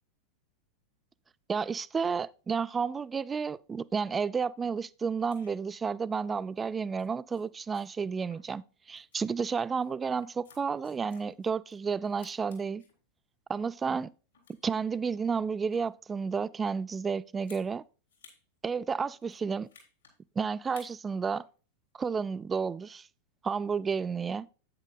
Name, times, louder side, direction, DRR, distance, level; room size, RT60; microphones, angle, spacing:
voice 1, 1.5-12.8 13.5-14.1 14.6-17.8 18.6-19.7 20.4-21.5 21.9-23.1 23.4-24.5, right 5 dB, 15° right, 0.3 m, -31 dB
sound 1, 5.3-5.5 6.5-6.7 7.0-7.1 7.3-7.4 7.7-7.8 8.3-8.7 9.0-9.2 9.7-11.7 12.0-12.9 13.5-14.0 14.3-14.9 15.5-16.0 17.4-17.7 18.1-18.4 18.7-18.8 19.2-20.1 20.6-21.0 21.4-21.6, left 5 dB, 70° left, 3.5 m, -58 dB
10.5 x 8.9 x 2.3 m
figure-of-eight pair, 90°, 0 cm